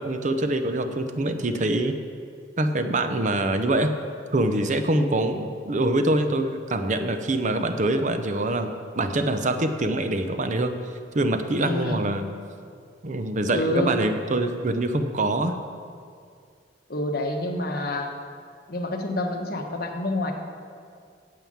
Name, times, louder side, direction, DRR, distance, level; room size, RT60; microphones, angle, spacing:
voice 1, 0.0-1.9 2.6-3.9 4.3-10.7 11.1-12.3 13.0-15.5, right 2 dB, 45° right, 8 dB, 0.7 m, -24 dB
voice 2, 4.9-5.2 11.6-12.0 13.5-13.9 16.9-18.1 18.7-20.3, left 1 dB, 55° left, 3 dB, 1.2 m, -27 dB
9.1 x 7.6 x 8.7 m, 2.2 s
head